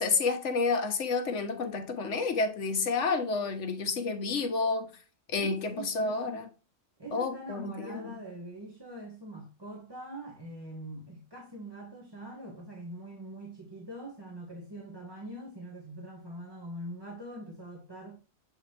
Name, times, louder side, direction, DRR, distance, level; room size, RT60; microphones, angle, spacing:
voice 1, 0.0-4.9 5.3-6.5 7.1-8.1, left 4 dB, 70° left, 1.4 m, -30 dB
voice 2, 5.4-6.4 7.0-18.2, right 1 dB, 20° right, 1.4 m, -43 dB
7.8 x 4.2 x 3.3 m
omnidirectional pair, 1.3 m